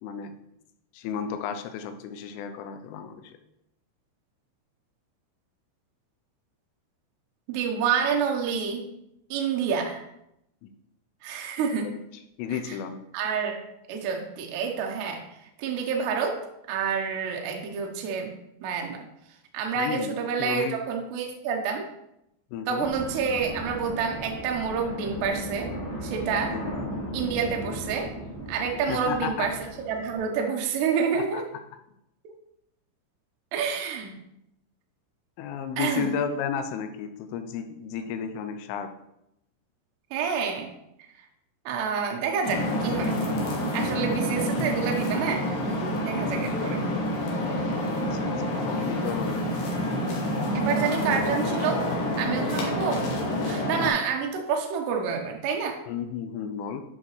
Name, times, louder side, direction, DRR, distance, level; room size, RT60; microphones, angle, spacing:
voice 1, 0.0-0.4 0.9-3.3 10.6-10.7 12.4-13.0 19.8-20.8 22.5-22.9 26.5-26.7 28.9-29.5 31.1-31.4 35.4-38.9 48.1-49.5 55.9-56.8, left 7 dB, 85° left, 8 dB, 3.2 m, -33 dB
voice 2, 7.5-8.9 9.3-10.0 11.2-11.9 12.5-12.8 13.1-13.6 13.9-15.2 15.6-16.4 16.7-18.3 18.6-19.0 19.5-21.9 22.7-25.7 26.0-26.5 27.1-28.1 28.5-29.6 29.9-31.4 33.5-34.2 35.8-36.1 40.1-40.7 41.7-43.2 43.7-45.5 46.0-46.8 50.5-51.9 52.2-53.0 53.4-55.8, right 6 dB, 75° right, 2 dB, 2.6 m, -28 dB
sound 1, 22.8-30.2, right 1 dB, 40° left, 3.4 m, -36 dB
sound 2, 42.4-53.9, left 1 dB, 65° left, 2.2 m, -28 dB
10.0 x 5.8 x 3.1 m, 0.82 s
omnidirectional pair, 5.8 m